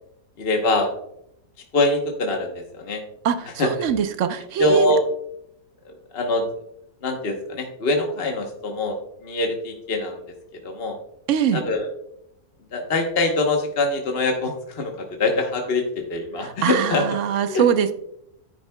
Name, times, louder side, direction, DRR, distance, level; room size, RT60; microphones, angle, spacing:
voice 1, 0.4-0.9 1.7-3.0 3.6-3.9 4.6-5.0 5.8-6.4 7.0-9.0 9.2-10.2 10.6-11.0 11.5-11.9 12.7-17.2 17.5-17.6, left 2 dB, 45° left, 2 dB, 1.2 m, -23 dB
voice 2, 3.2-4.9 11.3-11.6 16.4-17.9, right 8 dB, 60° right, 9 dB, 1.0 m, -22 dB
10.5 x 9.1 x 2.2 m, 0.75 s
omnidirectional pair, 1.6 m